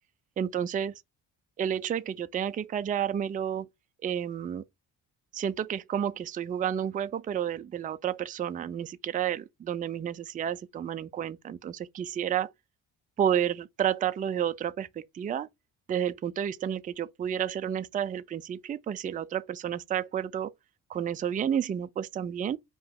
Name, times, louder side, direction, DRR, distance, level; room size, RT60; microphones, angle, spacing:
voice 1, 0.4-0.9 1.6-3.7 4.0-4.6 5.3-12.5 13.2-15.5 15.9-20.5 20.9-22.6, right 9 dB, 20° right, 0.3 m, -31 dB
4.6 x 2.9 x 3.6 m
hypercardioid pair, 50°, 45 cm